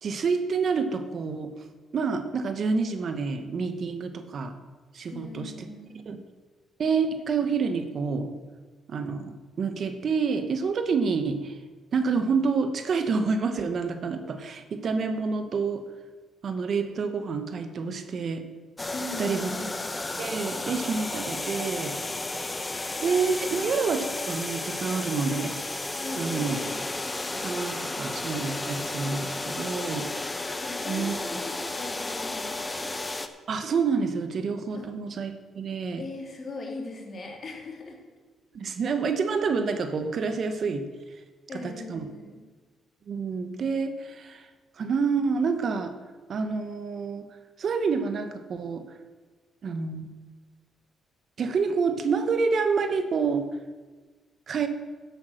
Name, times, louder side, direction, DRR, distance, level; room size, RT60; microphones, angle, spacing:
voice 1, 0.0-1.5 1.9-4.6 4.9-5.5 6.1-6.2 6.8-8.3 8.9-11.6 11.9-15.8 16.4-18.4 19.2-19.5 20.2-22.0 23.0-25.6 26.2-26.6 27.3-30.1 30.9-31.1 33.5-36.0 38.5-40.8 41.6-42.0 43.1-44.5 44.8-45.9 46.3-47.3 47.6-48.8 49.6-50.1 51.4-53.5 54.5-54.7, right 5 dB, 55° right, 8 dB, 1.1 m, -28 dB
voice 2, 5.1-6.1 18.9-19.8 23.5-23.6 26.0-26.8 30.6-32.9 34.7-34.9 35.9-38.0 41.5-42.4, left 2 dB, 45° left, 1 dB, 3.0 m, -40 dB
sound 1, 18.8-33.3, left 2 dB, 20° left, 0.9 m, -33 dB
10.5 x 8.1 x 6.6 m, 1.3 s
cardioid pair, 90°, 0 cm